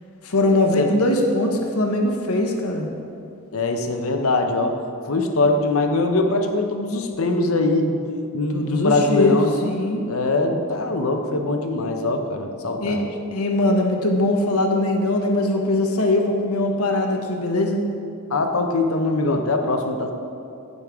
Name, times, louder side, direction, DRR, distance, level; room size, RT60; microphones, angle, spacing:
voice 1, 0.2-2.9 8.5-10.0 12.8-13.0 13.3-17.8, left 1 dB, 85° left, 2 dB, 1.1 m, -21 dB
voice 2, 3.5-4.7 5.1-8.0 8.3-9.5 10.0-13.1 18.3-20.1, left 2 dB, 70° left, 5 dB, 0.8 m, -22 dB
15.5 x 5.3 x 3.6 m, 2.6 s
head